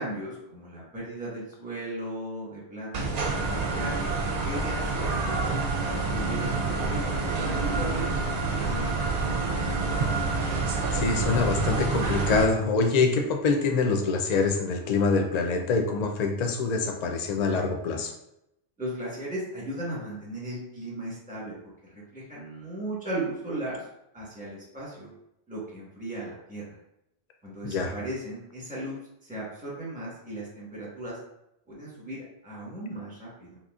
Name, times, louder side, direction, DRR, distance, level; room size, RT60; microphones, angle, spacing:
voice 1, 0.0-4.0 4.4-8.1 8.5-9.4 18.8-23.8 24.1-25.1 25.5-26.8 27.4-31.2 31.7-33.6, right 1 dB, 5° right, -6 dB, 1.2 m, -37 dB
sound 1, 2.9-12.5, right 3 dB, 55° right, 0.4 m, -27 dB
voice 2, 10.9-18.1 27.6-27.9, left 4 dB, 55° left, 4 dB, 0.5 m, -25 dB
4.0 x 2.9 x 2.4 m, 0.82 s
omnidirectional pair, 1.1 m